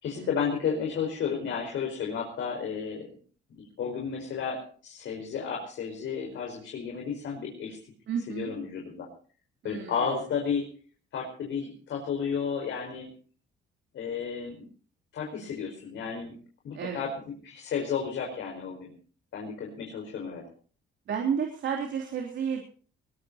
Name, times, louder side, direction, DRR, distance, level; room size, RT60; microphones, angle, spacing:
voice 1, 0.0-3.0 3.6-7.8 8.3-9.1 9.6-10.7 11.1-13.1 13.9-14.7 15.1-16.3 16.6-17.1 17.4-18.9 19.3-20.4, left 6 dB, 75° left, 0 dB, 5.0 m, -32 dB
voice 2, 8.1-8.5 9.6-10.0 16.7-17.1 21.1-22.6, right 7 dB, 65° right, 1 dB, 3.5 m, -31 dB
21.0 x 20.0 x 2.8 m, 0.42 s
cardioid pair, 90°, 20 cm